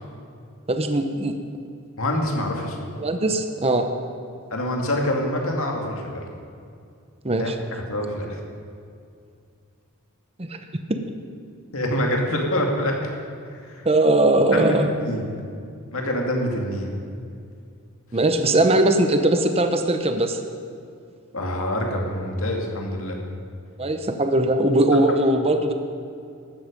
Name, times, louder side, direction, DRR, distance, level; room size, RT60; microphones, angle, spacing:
voice 1, 0.7-1.4 3.0-3.9 7.2-7.6 10.4-10.6 13.8-14.9 18.1-20.4 23.8-25.7, right 1 dB, 25° right, 6 dB, 0.9 m, -20 dB
voice 2, 2.0-2.9 4.5-6.2 7.4-7.5 7.9-8.4 11.7-13.0 13.5-13.8 14.5-15.3 15.9-17.0 21.3-23.2, left 1 dB, 65° left, 1 dB, 2.3 m, -25 dB
14.5 x 12.0 x 5.2 m, 2.4 s
head